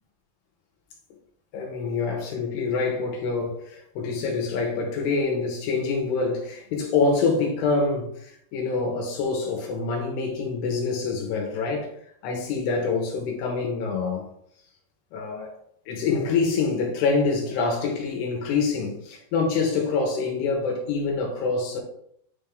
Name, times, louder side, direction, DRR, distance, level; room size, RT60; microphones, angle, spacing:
voice 1, 1.5-11.9 12.2-14.2 15.1-15.5 15.9-21.8, left 4 dB, 80° left, 3.2 m, -26 dB
9.8 x 3.6 x 3.4 m
omnidirectional pair, 4.8 m